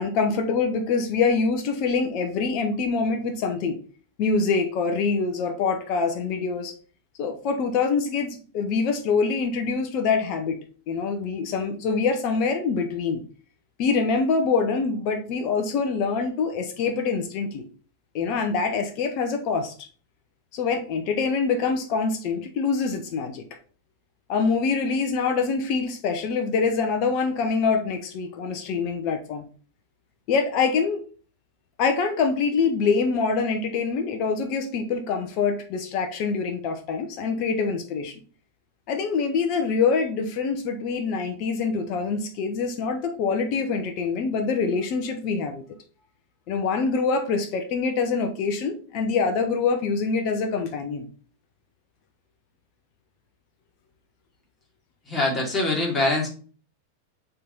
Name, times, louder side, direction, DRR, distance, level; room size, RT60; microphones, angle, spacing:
voice 1, 0.0-3.8 4.2-6.7 7.2-10.5 10.9-13.2 13.8-17.6 18.1-19.7 20.5-23.4 24.3-29.4 30.3-31.0 31.8-38.1 38.9-45.6 46.5-51.1, left 5 dB, 40° left, 5 dB, 0.9 m, -25 dB
voice 2, 55.1-56.3, left 2 dB, 15° left, -3 dB, 3.0 m, -23 dB
6.7 x 3.9 x 4.1 m, 0.41 s
figure-of-eight pair, 90°, 0 cm